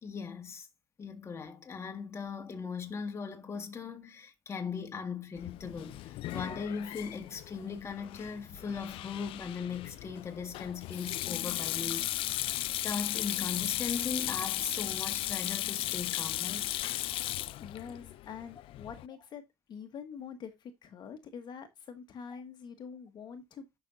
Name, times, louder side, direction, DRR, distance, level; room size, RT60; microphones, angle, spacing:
voice 1, 0.0-0.7 1.0-16.7, left 5 dB, 30° left, 1.6 m, -39 dB
Sink (filling or washing), 5.4-19.1, left 15 dB, 75° left, 0.4 m, -36 dB
voice 2, 17.6-19.4 19.7-23.6, left 7 dB, 50° left, 1.3 m, -45 dB
10.5 x 6.1 x 2.6 m
cardioid pair, 130°, 9 cm